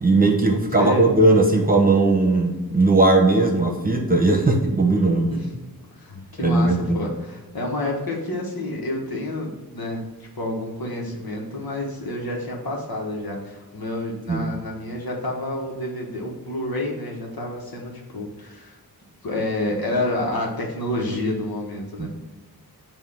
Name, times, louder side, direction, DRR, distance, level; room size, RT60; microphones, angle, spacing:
voice 1, 0.0-5.3 6.4-7.0 14.3-14.4 22.0-22.1, right 2 dB, 25° right, 2 dB, 1.0 m, -18 dB
voice 2, 0.8-1.1 5.3-5.5 5.9-10.0 10.3-18.8 19.2-22.1, left 1 dB, 75° left, -1 dB, 1.4 m, -29 dB
7.4 x 2.8 x 5.6 m, 1.2 s
wide cardioid pair, 95°, 36 cm